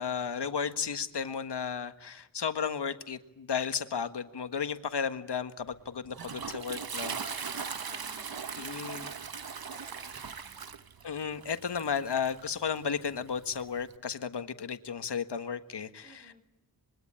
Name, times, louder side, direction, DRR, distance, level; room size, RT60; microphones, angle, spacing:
voice 1, 0.0-7.2 8.6-9.1 11.0-16.4, left 6 dB, 75° left, 10 dB, 1.7 m, -34 dB
Toilet flush, 5.6-14.0, right 6 dB, 60° right, 1.4 m, -40 dB
voice 2, 7.2-10.6 16.0-16.4, right 1 dB, 20° right, 8 dB, 6.2 m, -55 dB
26.0 x 23.0 x 9.0 m, 0.93 s
cardioid pair, 50°, 41 cm